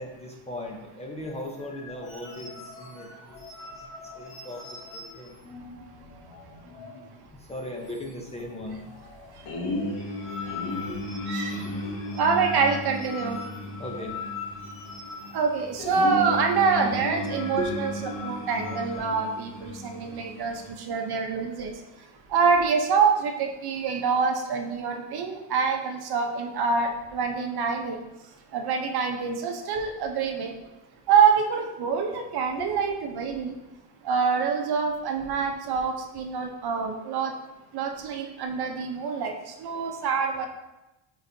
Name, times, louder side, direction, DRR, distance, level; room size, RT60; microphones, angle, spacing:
voice 1, 0.0-3.5 4.1-4.6 4.9-5.4 7.5-8.9 10.9-11.0 11.8-11.9 13.8-14.2 17.6-17.8 32.6-32.7, left 1 dB, 15° left, 0 dB, 0.9 m, -37 dB
sound 1, 1.2-7.1 7.4-7.6 7.8-8.4 8.7-16.0 16.3-16.5 17.0-19.0, left 5 dB, 75° left, 1.7 m, -42 dB
sound 2, 9.5-20.7, left 1 dB, 55° left, 1.6 m, -34 dB
voice 2, 12.2-13.4 15.3-17.9 18.2-20.6 20.9-21.7 22.3-28.0 28.5-30.5 31.1-33.5 34.0-37.3 37.7-39.3 39.6-40.5, right 5 dB, 50° right, 3 dB, 0.9 m, -25 dB
9.6 x 4.1 x 2.8 m, 0.98 s
cardioid pair, 120°, 50 cm